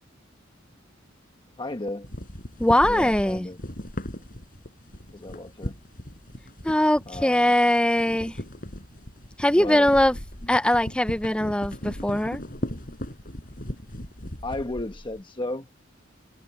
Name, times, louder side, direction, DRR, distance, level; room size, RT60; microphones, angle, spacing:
voice 1, 1.6-2.1 2.8-3.6 5.1-5.7 7.1-7.5 9.5-9.9 10.4-10.5 14.4-15.8, left 2 dB, 25° left, 1.0 m, -34 dB
sound 1, 2.0-7.5 7.8-15.2, equal, 45° left, 5.5 m, -37 dB
voice 2, 2.6-3.5 6.6-8.4 9.4-10.2 10.5-12.4, left 1 dB, 5° left, 0.5 m, -21 dB
head